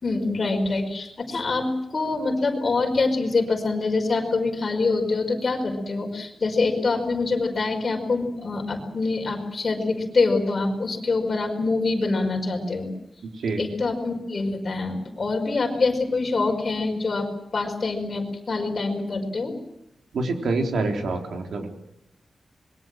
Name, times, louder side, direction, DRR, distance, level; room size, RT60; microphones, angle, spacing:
voice 1, 0.0-12.9 13.6-18.2 18.5-19.5, left 3 dB, 35° left, 2 dB, 5.2 m, -25 dB
voice 2, 13.3-13.7 20.1-21.7, right 3 dB, 85° right, 4 dB, 3.9 m, -26 dB
26.0 x 22.5 x 7.7 m, 0.86 s
wide cardioid pair, 175°, 0 cm